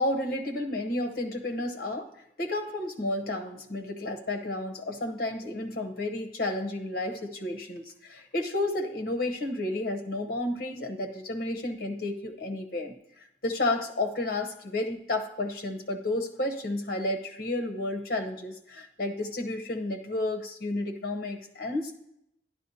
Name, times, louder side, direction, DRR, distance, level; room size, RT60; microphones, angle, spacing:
voice 1, 0.0-2.1 2.4-12.9 13.4-21.9, left 2 dB, 55° left, 4 dB, 0.9 m, -31 dB
12.0 x 11.0 x 2.8 m, 0.78 s
head